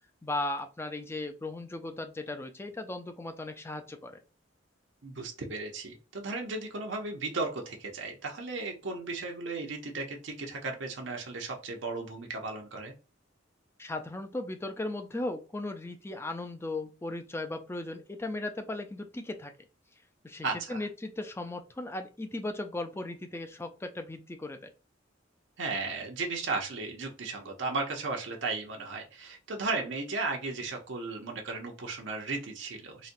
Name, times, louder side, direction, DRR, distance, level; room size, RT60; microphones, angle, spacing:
voice 1, 0.2-4.2 13.8-19.5 20.2-24.7, left 2 dB, 15° left, 7 dB, 0.4 m, -37 dB
voice 2, 5.0-12.9 20.4-20.8 25.6-33.1, right 3 dB, 70° right, 1 dB, 0.7 m, -35 dB
4.0 x 2.2 x 2.6 m, 0.33 s
head